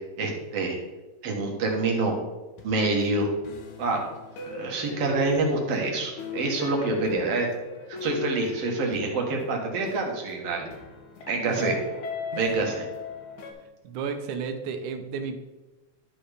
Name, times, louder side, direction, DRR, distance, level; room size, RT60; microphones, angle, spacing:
voice 1, 0.2-0.8 1.2-2.2 2.6-3.3 3.8-4.0 4.4-7.5 7.9-10.7 11.3-11.7 12.4-12.9, right 3 dB, 60° right, 1 dB, 2.2 m, -26 dB
sound 1, 2.6-13.5, left 4 dB, 80° left, 2.5 m, -38 dB
voice 2, 11.5-11.8 12.3-12.7 13.8-15.4, right 5 dB, 90° right, 7 dB, 2.3 m, -33 dB
11.5 x 4.3 x 5.0 m, 1.1 s
omnidirectional pair, 3.4 m